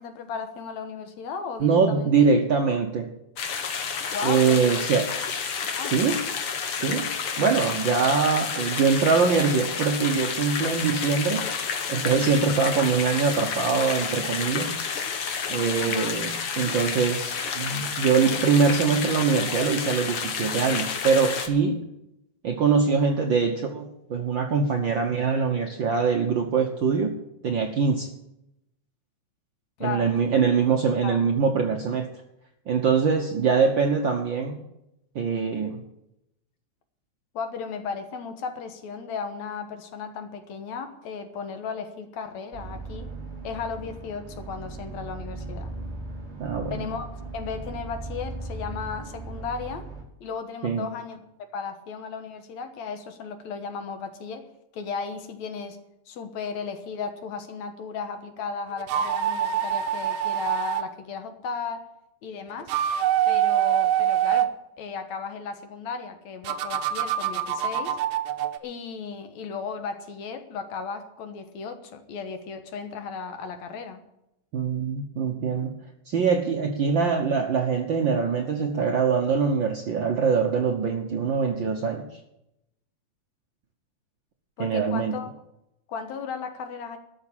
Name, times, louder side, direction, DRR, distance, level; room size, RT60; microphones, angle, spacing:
voice 1, 0.0-2.3 4.1-4.9 5.8-6.0 15.8-16.2 29.8-30.1 31.0-31.2 37.3-43.1 43.4-45.7 46.7-49.9 50.2-51.2 51.5-54.4 54.7-55.8 56.1-61.8 62.2-62.7 63.3-64.5 64.8-68.0 68.6-74.0 84.6-85.3 85.9-87.0, left 5 dB, 70° left, 7 dB, 2.5 m, -35 dB
voice 2, 1.6-3.1 4.2-5.1 5.8-6.2 6.7-7.1 7.4-11.5 11.9-14.7 15.5-21.8 22.4-27.2 27.4-28.1 29.8-32.1 32.7-34.6 35.1-35.8 46.4-46.8 50.6-50.8 74.5-75.8 76.1-82.0 84.6-85.2, right 5 dB, 60° right, 2 dB, 1.2 m, -23 dB
sound 1, 3.4-21.5, left 6 dB, 55° left, 1.9 m, -30 dB
sound 2, 42.5-50.0, right 3 dB, 20° right, 2.7 m, -37 dB
sound 3, 58.8-60.8 62.5-64.5 66.4-68.6, right 10 dB, 75° right, 2.0 m, -25 dB
13.5 x 6.6 x 9.9 m, 0.86 s
omnidirectional pair, 3.4 m